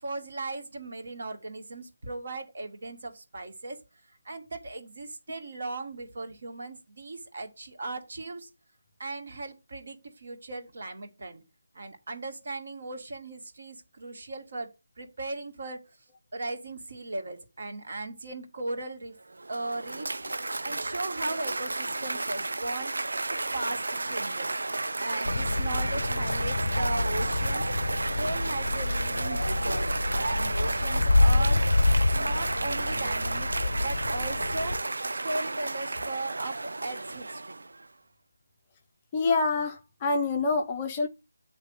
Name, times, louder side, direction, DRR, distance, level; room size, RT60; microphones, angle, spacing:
voice 1, 0.0-3.8 4.2-8.5 9.0-11.4 11.7-15.8 16.3-19.2 19.5-20.2 20.6-22.9 23.3-24.5 25.0-27.6 28.1-31.6 32.1-34.8 35.2-37.6, right 2 dB, 50° right, 2.2 m, -37 dB
Cheering / Applause, 19.2-37.8, right 2 dB, 75° right, 0.3 m, -32 dB
sound 1, 25.2-34.8, left 2 dB, 65° left, 0.5 m, -27 dB
voice 2, 39.1-41.1, left 3 dB, 15° left, 0.5 m, -26 dB
9.1 x 3.3 x 6.5 m
figure-of-eight pair, 170°, 0 cm